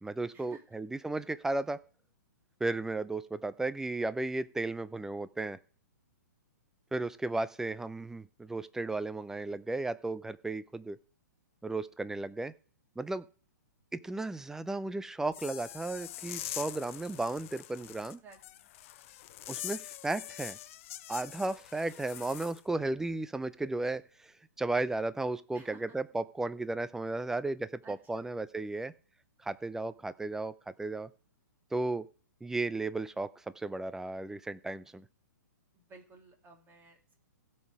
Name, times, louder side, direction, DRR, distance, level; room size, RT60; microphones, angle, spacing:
voice 1, 0.0-1.8 2.6-5.6 6.9-11.0 11.6-12.5 13.0-13.3 13.9-18.2 19.5-20.6 21.1-28.9 29.4-31.1 31.7-32.1 32.4-35.0, right 2 dB, 5° right, 15 dB, 0.5 m, -34 dB
sound 1, 15.3-22.6, left 14 dB, 45° left, 0.7 m, -44 dB
voice 2, 18.0-18.7 25.5-26.0 27.8-28.3 35.7-37.1, right 4 dB, 20° right, 4 dB, 2.8 m, -55 dB
16.5 x 5.5 x 4.8 m, 0.42 s
figure-of-eight pair, 120°, 10 cm